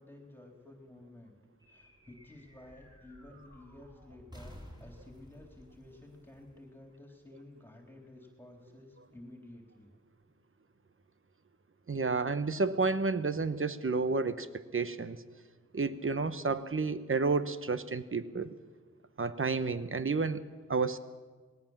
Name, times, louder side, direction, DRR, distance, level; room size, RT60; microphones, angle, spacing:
voice 1, 0.0-1.4 1.7-9.9, left 1 dB, 5° left, 1 dB, 3.6 m, -53 dB
sound 1, 1.6-7.3, equal, 15° right, 5.5 m, -54 dB
voice 2, 11.9-15.2 15.7-18.5 19.2-20.4 20.7-21.0, right 4 dB, 45° right, 12 dB, 1.1 m, -31 dB
20.0 x 17.5 x 7.4 m, 1.5 s
wide cardioid pair, 60°, 30 cm